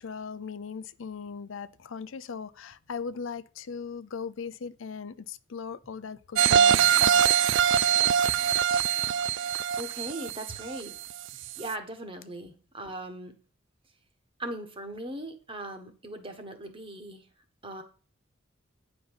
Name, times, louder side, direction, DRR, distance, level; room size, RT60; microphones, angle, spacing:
voice 1, 0.0-7.2, left 5 dB, 85° left, 0.5 m, -38 dB
sound 1, 6.4-11.1 11.5-11.6, right 8 dB, 65° right, 0.3 m, -23 dB
voice 2, 9.7-11.0 11.3-13.3 14.4-17.2 17.6-17.8, right 1 dB, 30° right, 1.5 m, -39 dB
9.5 x 5.1 x 5.7 m
head